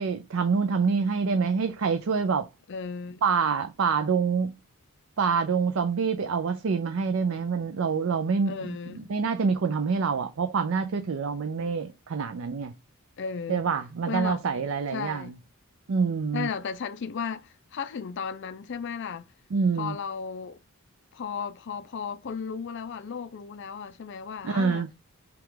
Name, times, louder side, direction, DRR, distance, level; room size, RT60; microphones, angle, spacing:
voice 1, 0.0-2.5 3.2-4.5 5.2-8.6 8.9-12.7 13.5-15.3 15.9-16.5 19.5-19.9 24.4-24.9, right 5 dB, 60° right, 0.4 m, -26 dB
voice 2, 2.7-3.2 8.5-9.1 13.2-13.7 14.1-14.4 14.9-15.3 16.3-19.3 19.8-20.6 21.1-24.9, left 6 dB, 55° left, 0.4 m, -35 dB
5.8 x 2.4 x 3.7 m
head